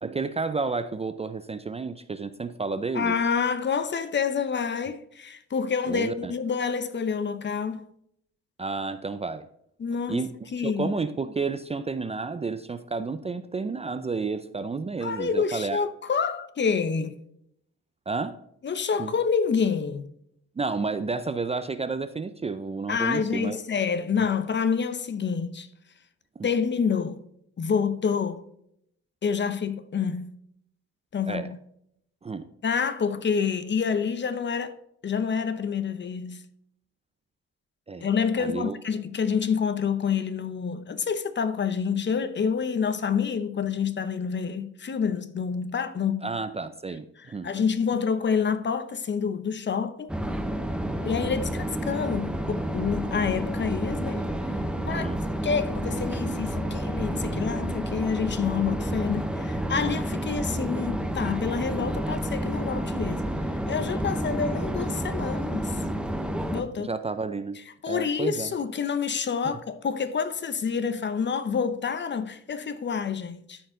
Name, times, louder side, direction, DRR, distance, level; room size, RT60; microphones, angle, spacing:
voice 1, 0.0-3.2 5.9-6.3 8.6-9.5 10.1-10.3 10.6-15.8 18.1-18.4 19.0-19.1 20.6-23.6 24.2-24.3 26.4-26.5 31.3-31.5 32.2-32.5 37.9-38.1 38.4-38.8 46.2-47.5 54.9-55.2 66.8-67.6 67.8-68.5 69.4-69.6, right 4 dB, 20° right, 0.5 m, -31 dB
voice 2, 2.9-7.8 9.8-10.2 10.5-10.9 15.0-17.2 18.6-20.1 22.9-25.7 26.4-27.2 27.6-28.4 29.2-30.3 31.1-31.6 32.6-34.7 35.0-36.4 38.0-46.3 47.4-50.1 51.0-54.3 54.8-55.1 55.4-63.3 63.7-65.8 66.5-66.9 67.8-73.6, left 6 dB, 35° left, 0.8 m, -28 dB
sound 1, 50.1-66.6, right 1 dB, 5° right, 0.9 m, -30 dB
13.5 x 4.5 x 3.8 m
cardioid pair, 90°, 30 cm